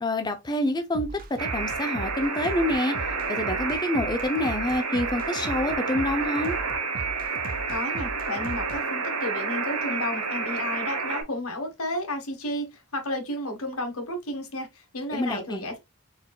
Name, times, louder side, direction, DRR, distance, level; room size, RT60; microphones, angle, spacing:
voice 1, 0.0-3.0 3.3-6.6 15.1-15.6, left 1 dB, 20° left, 0.5 m, -27 dB
sound 1, 0.9-8.8, right 3 dB, 40° right, 0.4 m, -38 dB
Alarm, 1.4-11.2, right 4 dB, 90° right, 1.2 m, -30 dB
voice 2, 7.7-15.8, left 1 dB, 80° left, 1.4 m, -32 dB
4.3 x 3.7 x 2.3 m
head